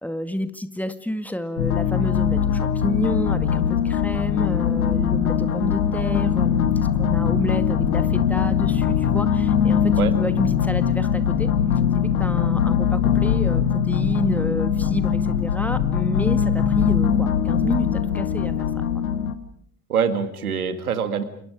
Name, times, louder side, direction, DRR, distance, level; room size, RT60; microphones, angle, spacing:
voice 1, 0.0-11.5 11.9-18.8, left 1 dB, 5° left, 10 dB, 2.0 m, -30 dB
sound 1, 1.6-19.3, left 8 dB, 70° left, 1.9 m, -21 dB
voice 2, 19.9-21.2, right 7 dB, 80° right, 10 dB, 2.1 m, -24 dB
29.0 x 28.5 x 5.1 m, 0.65 s
figure-of-eight pair, 60°, 43 cm